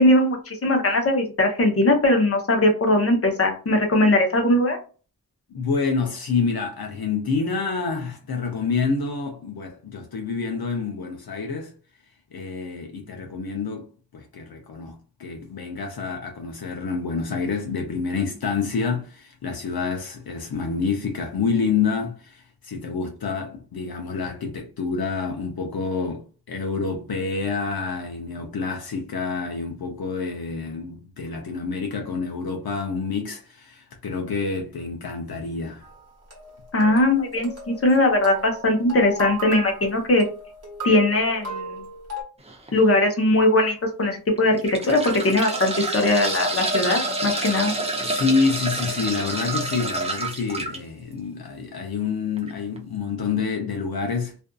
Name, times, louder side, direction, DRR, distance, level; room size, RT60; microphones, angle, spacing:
voice 1, 0.0-4.8 36.7-40.2 40.8-41.8 42.7-44.6 44.9-47.7, left 1 dB, 40° left, 0.8 m, -20 dB
voice 2, 5.5-11.7 12.3-13.9 14.1-35.8 48.0-54.3, left 5 dB, 70° left, 0.6 m, -28 dB
sound 1, 35.8-42.2, right 1 dB, 40° right, 1.1 m, -36 dB
sound 2, 42.4-42.7 43.3-43.4 44.4-50.8 52.4-52.5 52.8-52.9, right 2 dB, 15° right, 0.5 m, -28 dB
2.5 x 2.4 x 2.2 m
wide cardioid pair, 90°, 38 cm